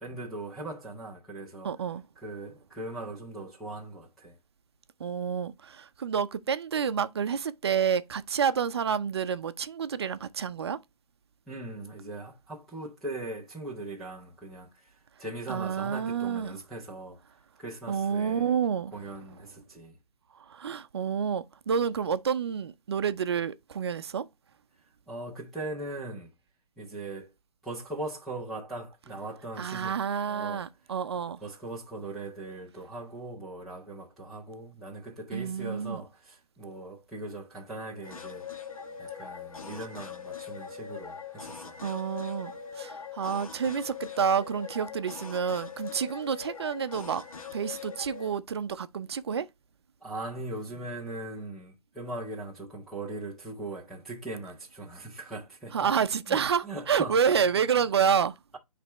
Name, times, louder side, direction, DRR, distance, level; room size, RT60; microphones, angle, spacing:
voice 1, 0.0-1.7 2.2-4.4 11.5-17.2 17.6-18.6 18.9-20.0 25.1-26.3 26.8-27.3 27.6-30.0 30.3-30.7 31.4-38.5 39.0-41.8 50.0-55.9 56.3-57.5, right 2 dB, ahead, 0.4 m, -40 dB
voice 2, 1.6-2.0 5.0-10.8 15.5-16.6 17.9-18.9 20.5-24.3 29.6-31.4 35.3-36.0 41.8-47.2 47.5-49.5 55.7-58.3, right 7 dB, 45° right, 0.6 m, -29 dB
sound 1, 38.0-48.3, left 7 dB, 65° left, 1.4 m, -42 dB
9.5 x 3.4 x 3.0 m
hypercardioid pair, 155°, 20 cm